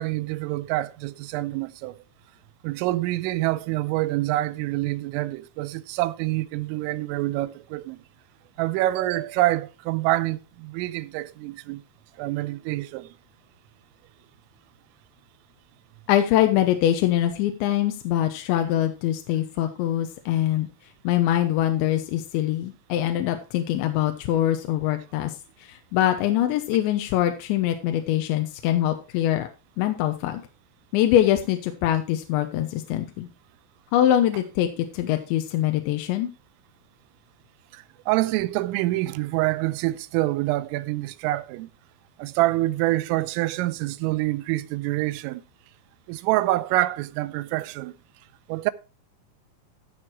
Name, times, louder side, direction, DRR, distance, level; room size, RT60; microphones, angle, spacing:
voice 1, 0.0-2.0 2.6-8.0 8.6-11.8 12.2-13.1 37.7-41.7 42.2-45.4 46.1-48.0 48.5-48.7, right 17 dB, 90° right, 3.3 m, -26 dB
voice 2, 16.1-20.7 21.0-29.5 29.8-30.4 30.9-33.3 33.9-36.3, left 12 dB, 80° left, 3.1 m, -23 dB
14.0 x 6.6 x 4.6 m
omnidirectional pair, 5.7 m